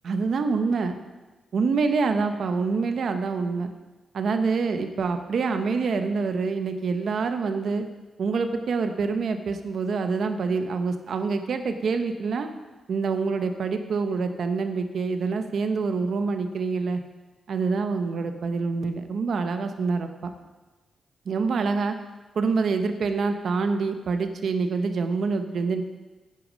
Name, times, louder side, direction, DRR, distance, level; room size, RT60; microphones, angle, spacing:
voice 1, 0.0-1.0 1.5-3.7 4.1-7.9 8.2-12.5 12.9-17.0 17.5-20.3 21.3-22.0 22.3-25.8, right 4 dB, 60° right, 7 dB, 0.9 m, -26 dB
10.5 x 9.5 x 5.1 m, 1.2 s
wide cardioid pair, 170°, 0 cm